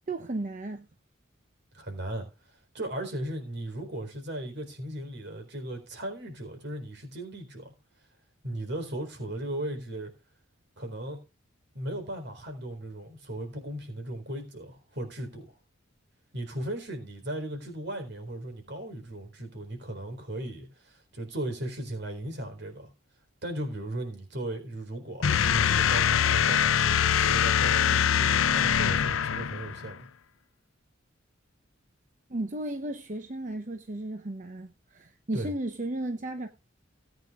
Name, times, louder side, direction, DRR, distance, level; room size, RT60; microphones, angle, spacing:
voice 1, 0.1-0.9 32.3-36.5, right 1 dB, 40° right, 0.8 m, -34 dB
voice 2, 1.7-7.7 8.4-10.1 10.8-11.2 11.7-15.5 16.3-22.9 23.4-30.1 35.3-35.5, right 1 dB, 60° right, 4.1 m, -37 dB
sound 1, 25.2-29.9, left 8 dB, 85° left, 0.6 m, -23 dB
18.0 x 9.1 x 2.5 m
head